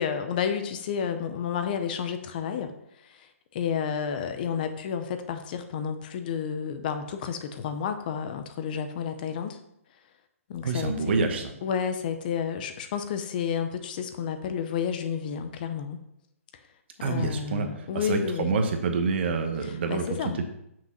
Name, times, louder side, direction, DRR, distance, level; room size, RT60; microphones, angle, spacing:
voice 1, 0.0-2.7 3.0-9.6 10.5-16.0 17.0-18.5 19.6-20.4, left 7 dB, 35° left, 8 dB, 0.7 m, -31 dB
voice 2, 10.6-11.4 17.0-20.4, right 4 dB, 50° right, 6 dB, 1.2 m, -27 dB
6.2 x 5.1 x 5.9 m, 0.79 s
hypercardioid pair, 155°, 8 cm